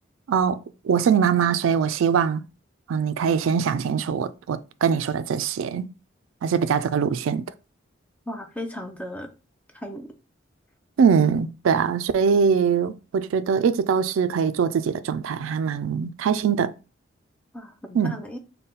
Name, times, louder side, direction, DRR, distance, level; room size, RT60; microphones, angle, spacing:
voice 1, 0.3-0.6 0.8-2.4 2.9-5.9 6.4-7.4 11.0-16.7 17.9-18.2, right 6 dB, 85° right, 0.3 m, -22 dB
voice 2, 8.3-9.3 9.7-10.1 17.5-18.4, left 1 dB, 5° left, 0.4 m, -35 dB
4.0 x 2.2 x 3.8 m
head